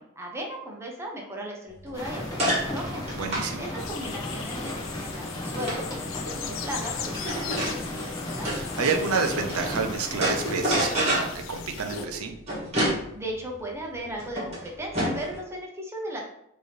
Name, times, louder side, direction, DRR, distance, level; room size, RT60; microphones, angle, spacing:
voice 1, 0.0-3.1 3.6-8.5 13.1-16.2, right 1 dB, 10° right, -1 dB, 0.7 m, -37 dB
sound 1, 1.7-9.8 10.1-15.4, right 1 dB, 30° right, 1.4 m, -30 dB
sound 2, 1.9-10.8, left 1 dB, 15° left, 0.9 m, -35 dB
voice 2, 3.2-3.6 8.5-12.4, right 4 dB, 85° right, 6 dB, 0.6 m, -29 dB
sound 3, 3.8-12.1, left 9 dB, 60° left, 0.3 m, -39 dB
4.6 x 2.8 x 3.2 m, 0.77 s
head